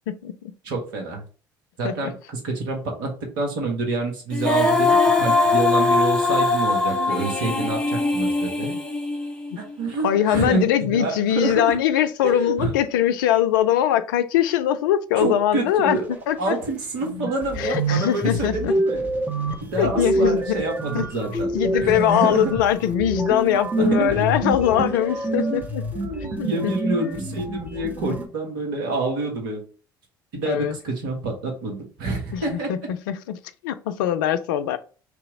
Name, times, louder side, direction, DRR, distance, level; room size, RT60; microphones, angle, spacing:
voice 1, 0.1-0.5 1.8-2.1 10.0-16.0 16.3-16.6 17.6-18.7 19.8-20.6 20.9-21.1 21.5-25.8 26.4-26.7 30.4-30.8 32.3-32.8 33.1-34.8, left 10 dB, 70° left, 0.4 m, -22 dB
voice 2, 0.6-1.2 1.8-4.9 5.2-8.8 9.6-11.8 12.2-12.7 15.2-16.1 16.4-19.1 19.5-22.5 23.8-24.2 25.9-29.6 30.3-32.9, right 3 dB, 70° right, 1.3 m, -27 dB
Female singing, 4.3-9.5, left 3 dB, 10° left, 1.1 m, -21 dB
sound 1, 16.7-16.8 17.0-28.2, right 1 dB, 15° right, 1.2 m, -27 dB
3.4 x 2.9 x 4.7 m
hypercardioid pair, 60°, 11 cm